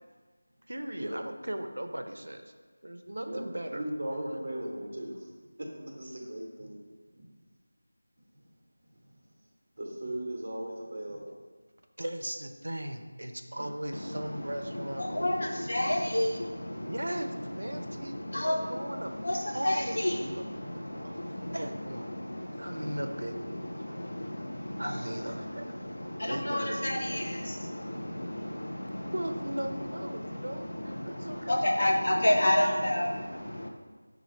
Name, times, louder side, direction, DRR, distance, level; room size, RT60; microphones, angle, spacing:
voice 1, 0.7-2.4 2.8-3.8 4.1-4.3 12.0-15.6 16.9-18.2 18.7-19.1 19.5-20.2 21.0-21.1 21.5-22.1 22.5-23.4 23.8-24.0 24.8-25.7 26.3-27.0 29.1-31.6 32.1-32.2, right 1 dB, 85° right, 6 dB, 0.4 m, -37 dB
voice 2, 3.7-5.3 5.6-6.9 7.1-7.3 9.0-9.1 9.8-11.3 13.6-13.7, right 1 dB, 35° right, -1 dB, 0.8 m, -37 dB
voice 3, 13.9-33.7, left 1 dB, 50° left, 0 dB, 0.6 m, -32 dB
6.7 x 2.4 x 3.2 m, 1.4 s
figure-of-eight pair, 180°, 0 cm